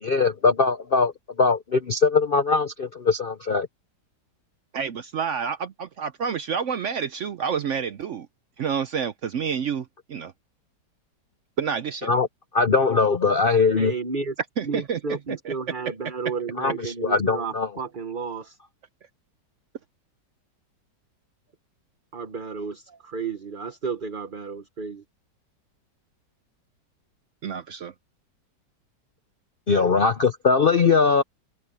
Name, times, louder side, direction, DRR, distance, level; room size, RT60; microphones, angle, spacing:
voice 1, 0.0-1.1 1.4-3.7 12.0-12.3 12.5-13.9 16.6-17.7 29.7-31.2, left 4 dB, 55° left, 0.6 m, -21 dB
voice 2, 4.7-8.3 8.6-10.3 11.6-12.1 14.6-15.5 16.8-16.9 27.4-27.9, right 7 dB, 65° right, 0.7 m, -29 dB
voice 3, 13.8-14.3 14.6-18.6 22.1-25.0, right 5 dB, 35° right, 1.1 m, -32 dB
omnidirectional pair, 1.9 m